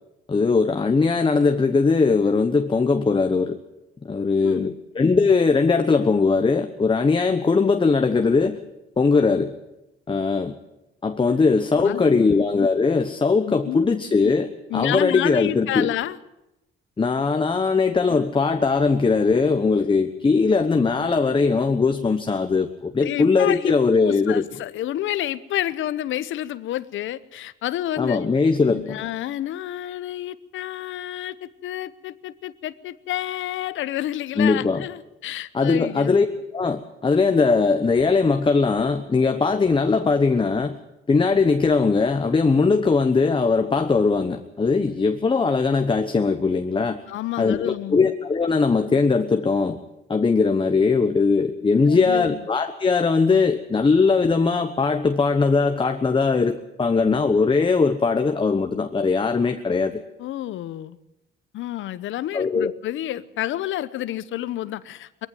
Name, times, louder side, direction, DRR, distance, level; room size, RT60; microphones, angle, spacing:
voice 1, 0.3-3.6 4.0-8.6 9.0-9.5 10.1-10.5 11.0-15.9 17.0-24.5 28.0-29.0 34.4-34.8 35.5-36.3 36.5-40.8 41.1-47.0 47.4-49.8 50.1-60.0 62.3-62.7, left 4 dB, 25° left, 7 dB, 1.2 m, -20 dB
voice 2, 4.4-4.8 11.8-12.2 13.5-13.9 14.2-14.3 14.7-16.2 23.0-28.3 28.7-36.2 47.1-48.1 51.9-52.4 60.2-61.0 61.5-65.3, left 13 dB, 80° left, 16 dB, 0.9 m, -29 dB
20.0 x 14.5 x 9.2 m, 0.91 s
cardioid pair, 90°, 20 cm